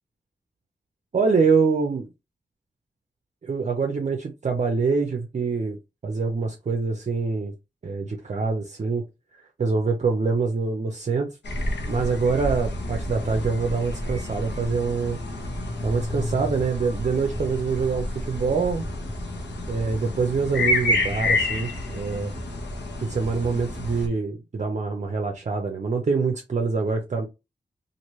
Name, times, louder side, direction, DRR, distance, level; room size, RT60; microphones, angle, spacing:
voice 1, 1.1-2.1 3.4-5.8 6.0-7.5 7.8-9.1 9.6-11.3 11.9-15.2 15.8-18.8 19.7-22.3 23.0-27.3, right 4 dB, 45° right, 0.5 m, -25 dB
sound 1, 11.4-24.1, left 1 dB, 85° left, 0.9 m, -29 dB
3.0 x 2.5 x 3.0 m
wide cardioid pair, 130°, 18 cm